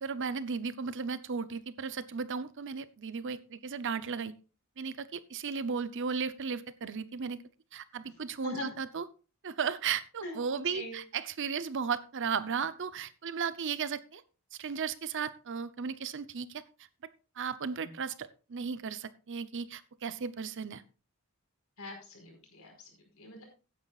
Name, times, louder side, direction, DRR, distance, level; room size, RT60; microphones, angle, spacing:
voice 1, 0.0-4.3 4.8-7.4 7.7-9.0 9.4-14.2 14.6-16.6 17.4-20.8, right 6 dB, 55° right, 14 dB, 0.7 m, -35 dB
voice 2, 8.1-8.7 10.2-11.0 17.8-17.9 21.8-23.5, left 3 dB, 70° left, 3 dB, 4.7 m, -43 dB
15.5 x 9.6 x 2.4 m, 0.33 s
head